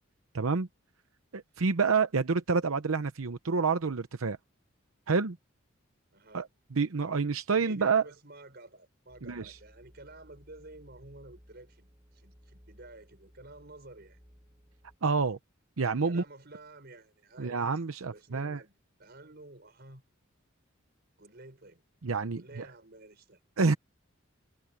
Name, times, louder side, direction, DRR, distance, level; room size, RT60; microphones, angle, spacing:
voice 1, 0.3-0.7 1.3-4.4 5.1-5.4 6.3-6.5 6.7-8.0 9.2-9.6 15.0-15.4 15.8-16.2 17.4-18.6 22.0-22.7 23.6-23.7, right 4 dB, 90° right, 0.8 m, -28 dB
voice 2, 6.1-6.5 7.5-14.2 16.0-17.6 18.0-20.0 21.2-21.8 22.3-23.4, right 2 dB, 50° right, 5.2 m, -51 dB
sound 1, 9.1-15.0, equal, 20° right, 7.6 m, -59 dB
head